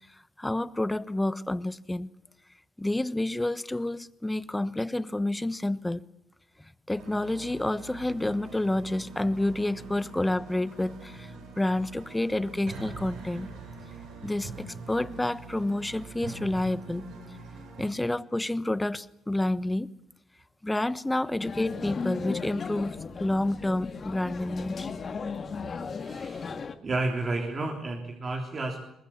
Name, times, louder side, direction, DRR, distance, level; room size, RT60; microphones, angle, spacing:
voice 1, 0.4-2.1 2.8-6.0 6.9-13.5 14.2-17.1 17.8-19.9 20.6-24.9, left 1 dB, 10° left, 1.1 m, -29 dB
sound 1, 6.9-17.9, right 3 dB, 85° right, 7.4 m, -44 dB
sound 2, 21.4-26.7, left 5 dB, 45° left, 2.1 m, -36 dB
voice 2, 25.9-26.6 26.8-28.8, right 2 dB, 40° right, 3.6 m, -31 dB
22.5 x 20.0 x 8.7 m
cardioid pair, 90°, 0 cm